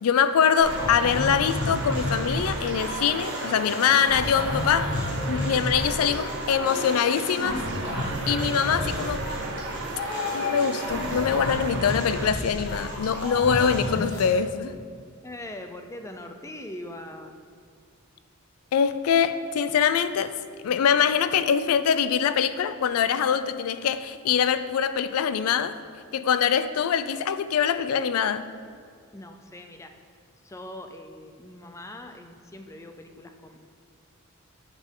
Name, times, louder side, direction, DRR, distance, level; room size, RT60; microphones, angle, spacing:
voice 1, 0.0-5.0 5.3-7.6 8.3-9.2 10.3-14.8 18.7-20.4 20.6-25.8 26.1-28.4, left 7 dB, 80° left, 13 dB, 0.4 m, -23 dB
sound 1, 0.6-14.3, left 1 dB, 55° left, 1.7 m, -31 dB
sound 2, 0.7-12.3, right 4 dB, 60° right, 0.6 m, -36 dB
voice 2, 15.2-17.4 29.1-29.9 30.4-33.6, left 1 dB, 15° left, 6 dB, 0.4 m, -41 dB
7.5 x 6.2 x 3.7 m, 2.1 s
head